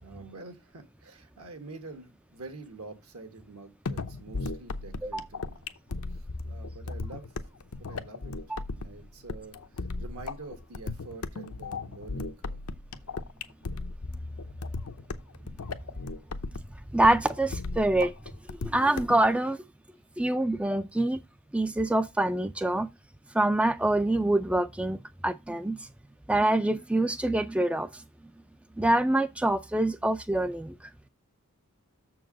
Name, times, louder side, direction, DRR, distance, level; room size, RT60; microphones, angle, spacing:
voice 1, 0.0-5.7 6.1-7.5 7.7-8.3 8.7-12.6, right 3 dB, 75° right, 1.7 m, -47 dB
sound 1, 3.9-19.3, left 3 dB, 80° left, 0.7 m, -36 dB
voice 2, 16.9-18.1 18.5-19.6 20.2-21.2 21.5-22.9 23.3-25.9 26.3-28.0 28.8-30.8, right 1 dB, 5° right, 0.3 m, -25 dB
6.9 x 4.7 x 6.3 m
head